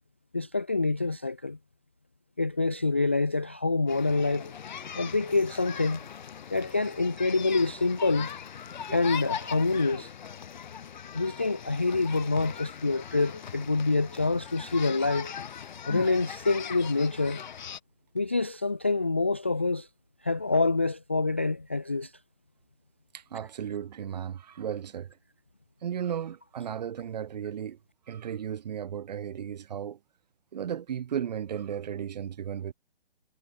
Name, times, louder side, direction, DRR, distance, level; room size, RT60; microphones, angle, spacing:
voice 1, 0.3-1.6 2.4-4.5 4.9-6.1 6.5-8.3 8.9-10.1 11.1-15.3 15.9-17.4 18.1-19.9 20.2-22.1, left 3 dB, 15° left, 0.4 m, -26 dB
sound 1, 3.9-17.8, left 8 dB, 45° left, 6.1 m, -40 dB
voice 2, 23.1-25.2 25.8-27.8 28.1-30.0 30.5-32.7, right 9 dB, 40° right, 4.1 m, -35 dB
hypercardioid pair, 160°, 30 cm